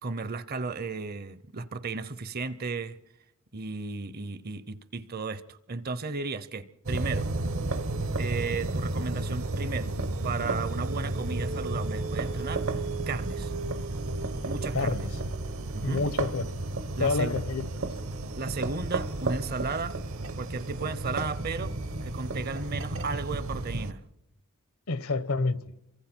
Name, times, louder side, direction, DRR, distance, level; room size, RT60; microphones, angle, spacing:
voice 1, 0.0-3.0 3.5-7.3 8.2-9.9 10.2-12.7 13.1-13.5 14.4-15.1 15.7-16.0 17.0-17.4 18.3-20.0 20.4-21.8 22.0-24.0, right 4 dB, 45° right, 0.7 m, -34 dB
sound 1, 6.9-23.9, right 2 dB, 70° right, 1.1 m, -32 dB
voice 2, 14.7-15.3 15.8-16.6 17.0-17.7 24.9-25.6, left 3 dB, 75° left, 1.0 m, -28 dB
28.0 x 24.0 x 4.5 m
head